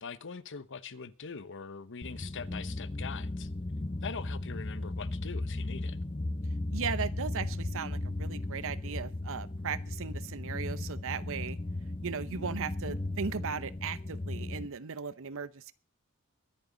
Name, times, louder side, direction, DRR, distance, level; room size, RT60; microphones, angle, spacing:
voice 1, 0.0-3.5 4.0-6.0, left 5 dB, 55° left, 0.9 m, -42 dB
sound 1, 2.0-14.7, left 2 dB, 25° left, 0.6 m, -36 dB
voice 2, 6.7-11.6 12.0-15.7, right 6 dB, 65° right, 0.8 m, -37 dB
22.5 x 9.2 x 3.9 m
head